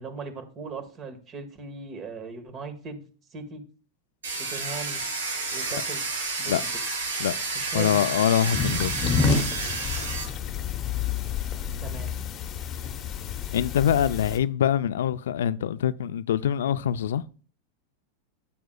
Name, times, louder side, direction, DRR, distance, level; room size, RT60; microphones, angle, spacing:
voice 1, 0.0-3.0 3.3-3.6 4.4-5.0 5.5-6.0 6.4-6.7 7.5-8.1 11.8-12.1, right 4 dB, 35° right, 1.5 m, -38 dB
Domestic sounds home sounds, 4.2-10.2, right 3 dB, 90° right, 4.7 m, -30 dB
voice 2, 7.7-8.9 13.5-17.2, left 9 dB, 80° left, 0.3 m, -24 dB
sound 1, 8.5-14.4, left 5 dB, 35° left, 0.8 m, -29 dB
9.4 x 7.8 x 2.3 m
hypercardioid pair, 115°, 0 cm